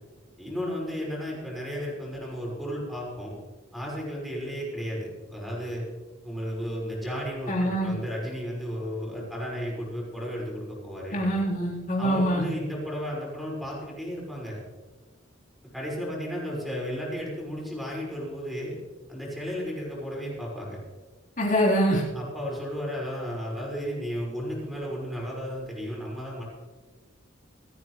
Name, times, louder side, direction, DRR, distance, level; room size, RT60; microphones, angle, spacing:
voice 1, 0.4-3.3 3.7-5.8 6.2-11.2 12.0-14.6 15.7-18.7 19.1-20.8 22.1-26.4, equal, ahead, -5 dB, 5.8 m, -34 dB
voice 2, 7.5-7.9 11.1-12.4 21.4-22.0, equal, 45° left, -5 dB, 4.1 m, -24 dB
27.5 x 9.7 x 3.3 m, 1.3 s
head